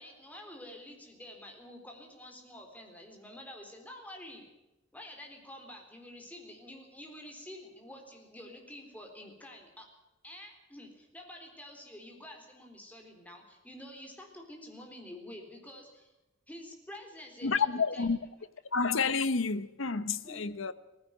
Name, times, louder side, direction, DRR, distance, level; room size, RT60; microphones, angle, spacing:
voice 1, 0.0-4.5 4.9-9.9 10.2-16.1 16.5-18.1 20.2-20.4, left 1 dB, 10° left, 3.9 m, -48 dB
voice 2, 17.4-18.2 18.7-20.7, left 5 dB, 80° left, 1.0 m, -29 dB
19.0 x 16.0 x 9.2 m
head